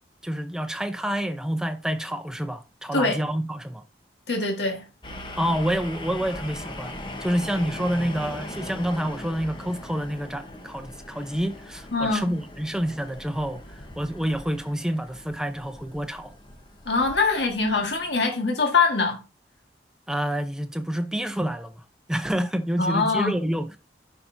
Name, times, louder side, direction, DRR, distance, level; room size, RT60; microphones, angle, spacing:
voice 1, 0.2-3.8 5.4-16.3 20.1-21.8 22.1-23.8, equal, 5° right, 0.7 m, -28 dB
voice 2, 4.3-4.8 11.9-12.3 16.8-19.2 22.8-23.3, left 4 dB, 80° left, 1.7 m, -23 dB
sound 1, 5.0-18.2, left 1 dB, 25° left, 1.0 m, -40 dB
11.5 x 5.6 x 2.7 m
head